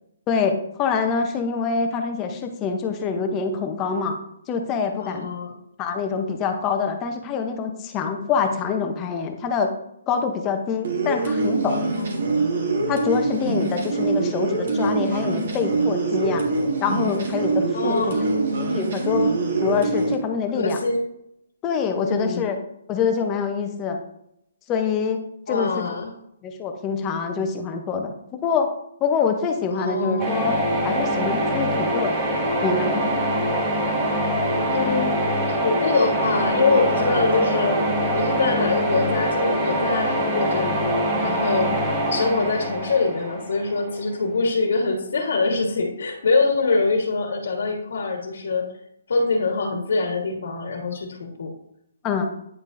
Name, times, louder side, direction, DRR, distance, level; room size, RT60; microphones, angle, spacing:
voice 1, 0.3-4.2 4.5-5.3 5.8-9.7 10.1-11.9 12.9-16.4 16.8-18.2 18.7-20.8 21.6-22.6 22.9-24.0 24.7-26.0 26.4-28.7 29.0-30.6 30.8-32.2 32.6-32.9 52.0-52.3, left 5 dB, 15° left, 5 dB, 0.7 m, -25 dB
voice 2, 5.0-5.5 12.0-12.3 17.7-18.3 20.6-21.0 22.0-22.4 25.5-26.1 29.7-30.3 34.7-35.1 35.5-37.8 38.1-40.9 41.2-41.7 42.0-48.7 49.1-51.5, left 3 dB, 75° left, 2 dB, 1.4 m, -24 dB
sound 1, 10.8-20.1, right 3 dB, 55° right, 1.7 m, -24 dB
sound 2, 30.2-44.0, right 1 dB, 20° right, 1.2 m, -24 dB
9.4 x 5.3 x 2.6 m, 0.78 s
hypercardioid pair, 165°, 0 cm